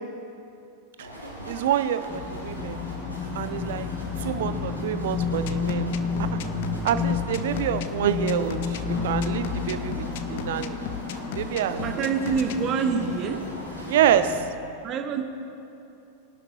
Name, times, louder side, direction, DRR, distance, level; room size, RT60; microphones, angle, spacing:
sound 1, 1.0-14.1, equal, 90° right, 3.1 m, -41 dB
voice 1, 1.5-2.8 3.3-3.9 4.2-6.0 6.3-6.4 6.8-10.8 11.3-12.1 13.9-14.5, right 10 dB, 55° right, 11 dB, 0.7 m, -27 dB
sound 2, 2.1-14.5, left 5 dB, 25° left, 1.4 m, -31 dB
sound 3, 5.2-12.6, left 10 dB, 50° left, 0.6 m, -37 dB
voice 2, 11.8-13.4 14.8-15.3, right 6 dB, 30° right, 6 dB, 1.2 m, -26 dB
22.0 x 11.0 x 2.9 m, 2.7 s
figure-of-eight pair, 90°, 0 cm